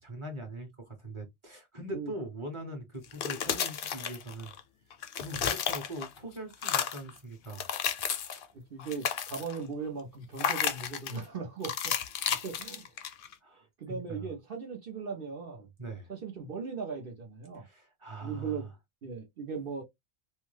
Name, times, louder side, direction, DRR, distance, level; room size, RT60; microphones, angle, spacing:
voice 1, 0.0-4.5 5.2-7.7 13.4-14.3 15.8-16.1 17.5-18.7, right 1 dB, 30° right, 1.1 m, -42 dB
sound 1, 3.0-4.6 4.9-6.2 6.5-7.1 7.5-8.5 8.8-9.6 10.4-11.2 11.6-13.3, left 8 dB, 60° left, 0.7 m, -32 dB
voice 2, 8.2-12.0 12.3-12.9 13.8-15.7 16.1-17.6 18.2-18.7 19.0-19.8, right 5 dB, 55° right, 1.0 m, -38 dB
2.7 x 2.2 x 3.2 m
omnidirectional pair, 1.1 m